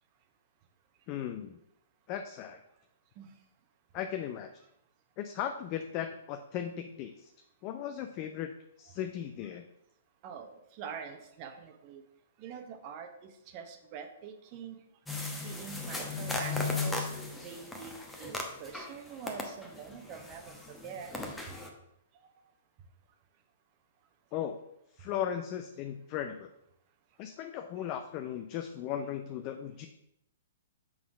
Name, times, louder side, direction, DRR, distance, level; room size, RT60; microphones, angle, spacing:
voice 1, 1.1-1.6 2.1-2.6 3.9-4.5 5.2-7.3 7.6-8.5 8.8-9.6 24.3-24.6 25.0-26.5 27.2-29.9, left 9 dB, 35° left, 6 dB, 0.4 m, -37 dB
voice 2, 10.2-12.0 12.4-14.8 15.3-17.1 17.4-21.1, right 7 dB, 40° right, 6 dB, 0.9 m, -45 dB
sound 1, 15.1-18.9 19.2-21.7, left 3 dB, 10° left, 0.9 m, -36 dB
6.2 x 3.7 x 4.8 m, 0.81 s
figure-of-eight pair, 120°, 0 cm